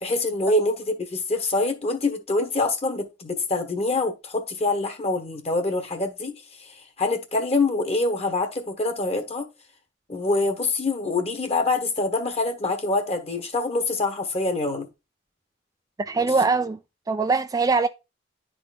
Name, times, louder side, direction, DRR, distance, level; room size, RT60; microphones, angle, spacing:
voice 1, 0.0-6.3 7.0-9.5 10.1-14.9, left 2 dB, 35° left, 1.3 m, -25 dB
voice 2, 16.0-16.8 17.1-17.9, right 4 dB, 20° right, 0.3 m, -22 dB
11.0 x 4.0 x 2.4 m
head